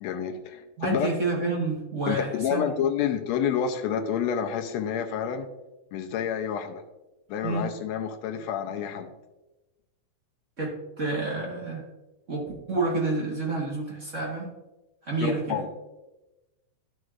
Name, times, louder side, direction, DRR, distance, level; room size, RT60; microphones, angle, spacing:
voice 1, 0.0-1.1 2.1-5.5 5.9-6.8 7.3-9.1 15.2-15.7, left 8 dB, 75° left, 5 dB, 1.7 m, -29 dB
voice 2, 0.8-2.7 7.4-7.6 10.6-11.9 12.3-14.5 15.0-15.6, right 3 dB, 50° right, -3 dB, 0.8 m, -29 dB
12.0 x 6.3 x 2.5 m, 1.0 s
omnidirectional pair, 3.4 m